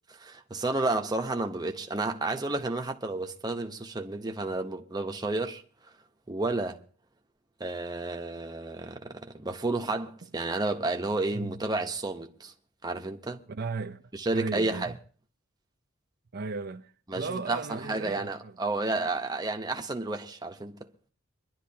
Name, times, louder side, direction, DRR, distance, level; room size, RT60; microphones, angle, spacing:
voice 1, 0.2-5.6 6.3-6.8 7.6-12.5 12.8-13.4 14.2-14.9 17.1-17.6 17.9-20.8, right 2 dB, 20° right, 0.9 m, -31 dB
voice 2, 13.5-14.0 14.3-14.9 16.3-18.5, right 4 dB, 50° right, 0.6 m, -36 dB
25.0 x 11.5 x 2.8 m
head